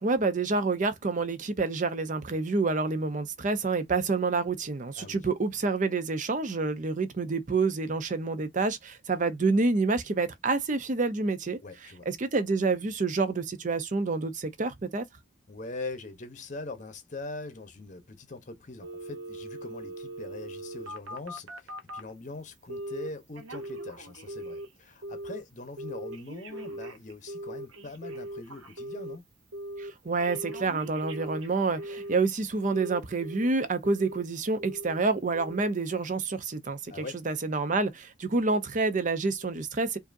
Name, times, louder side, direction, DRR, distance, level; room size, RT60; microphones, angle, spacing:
voice 1, 0.0-11.6 12.1-15.1 29.8-36.9 37.3-40.0, right 3 dB, 40° right, 0.6 m, -28 dB
voice 2, 11.6-12.1 15.5-29.3 36.9-37.2, left 3 dB, 40° left, 0.8 m, -42 dB
Telephone, 18.8-22.1 22.7-23.1 23.3-24.7 25.0-25.4 25.8-29.2 29.5-29.9 30.2-32.2 32.6-33.5 33.8-34.2 34.6-35.0 35.3-35.7 36.1-36.2, right 1 dB, 75° right, 0.8 m, -40 dB
4.8 x 2.7 x 2.5 m
head